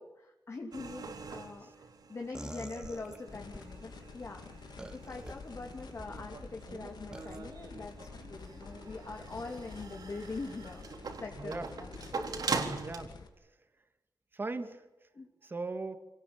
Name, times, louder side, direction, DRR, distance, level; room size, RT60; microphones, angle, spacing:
voice 1, 0.0-1.8 2.1-4.6 4.9-10.9 11.1-11.9 15.1-15.3, left 3 dB, 40° left, 1 dB, 3.1 m, -43 dB
sound 1, 0.7-2.3 2.8-13.0, right 4 dB, 65° right, 3.9 m, -42 dB
sound 2, 2.3-3.7 4.8-5.3 5.9-6.3 7.1-7.4, right 1 dB, 10° right, 2.2 m, -45 dB
sound 3, 3.3-13.3, left 4 dB, 80° left, 3.0 m, -49 dB
voice 2, 11.4-11.7 12.8-13.6 14.3-15.1 15.4-16.0, right 3 dB, 30° right, 7 dB, 2.3 m, -40 dB
27.5 x 19.0 x 9.0 m, 1.0 s
wide cardioid pair, 150°, 7 cm